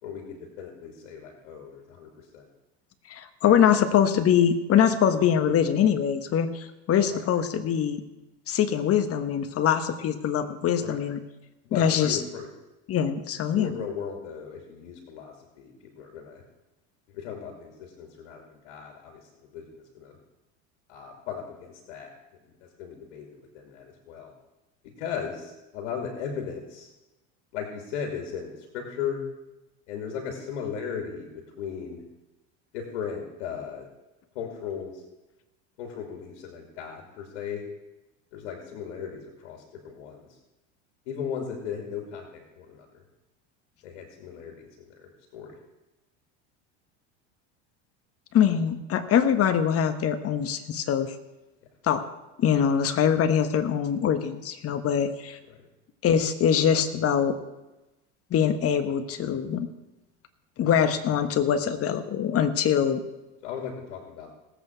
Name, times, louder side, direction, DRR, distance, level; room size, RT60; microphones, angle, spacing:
voice 1, 0.0-2.5 3.5-3.6 7.0-7.2 10.8-11.0 11.6-12.5 13.5-16.4 17.1-20.2 20.9-22.1 22.4-24.3 25.0-26.9 27.5-29.2 29.9-32.0 32.7-33.9 34.3-35.0 35.8-37.6 38.3-40.3 41.1-43.0 43.8-45.6 55.5-55.7 63.4-64.3, left 7 dB, 75° left, 2 dB, 2.7 m, -37 dB
voice 2, 3.1-8.0 8.5-11.2 11.7-12.2 12.9-13.7 48.3-51.1 51.8-52.1 52.4-55.4 56.0-57.4 58.3-59.7 60.6-63.0, left 8 dB, 40° left, 9 dB, 1.4 m, -23 dB
18.5 x 8.2 x 4.6 m, 1.0 s
supercardioid pair, 100°, 35 cm